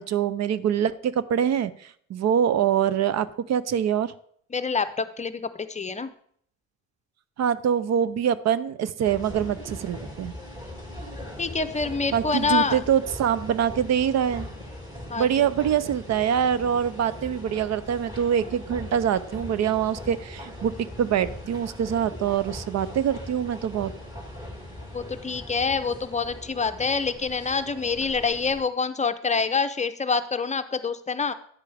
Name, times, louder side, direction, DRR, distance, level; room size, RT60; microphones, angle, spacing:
voice 1, 0.0-4.1 7.4-10.3 12.1-14.5 15.2-23.9, right 9 dB, 60° right, 16 dB, 0.6 m, -24 dB
voice 2, 4.5-6.1 11.4-12.8 15.1-15.5 24.9-31.3, left 5 dB, 25° left, 10 dB, 0.6 m, -26 dB
sound 1, 9.0-28.6, left 1 dB, 15° right, 2.6 m, -40 dB
9.7 x 8.3 x 3.4 m, 0.62 s
cardioid pair, 90°, 30 cm